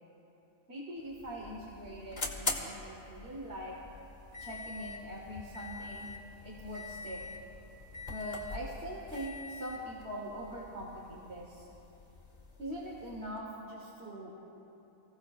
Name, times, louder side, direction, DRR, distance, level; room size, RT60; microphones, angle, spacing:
voice 1, 0.7-3.8 4.4-6.1 6.4-7.2 8.1-11.6 12.6-14.3, equal, 50° right, -3 dB, 1.6 m, -42 dB
sound 1, 1.0-13.4, left 3 dB, 30° left, 1.1 m, -44 dB
23.5 x 15.5 x 2.5 m, 3.0 s
omnidirectional pair, 1.4 m